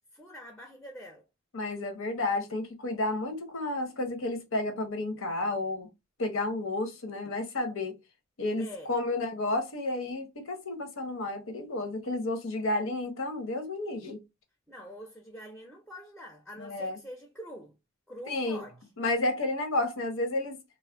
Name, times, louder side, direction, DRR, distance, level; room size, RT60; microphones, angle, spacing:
voice 1, 0.1-1.3 8.6-8.9 14.7-17.7 18.1-18.8, equal, 5° left, 0.4 m, -45 dB
voice 2, 1.5-5.9 6.2-7.9 8.4-14.2 16.6-17.0 18.3-18.6 19.0-20.6, left 2 dB, 75° left, 0.8 m, -31 dB
2.4 x 2.0 x 3.3 m
head